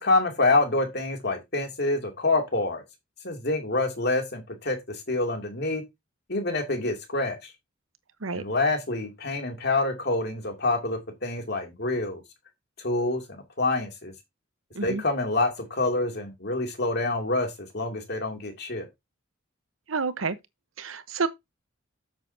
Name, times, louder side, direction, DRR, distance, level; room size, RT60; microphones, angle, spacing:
voice 1, 0.0-2.8 3.2-5.8 6.3-7.5 8.3-12.2 12.8-14.1 14.8-18.9, left 2 dB, 55° left, 2.6 m, -27 dB
voice 2, 19.9-20.4 20.8-21.3, right 4 dB, 90° right, 1.0 m, -29 dB
9.4 x 7.5 x 2.7 m
head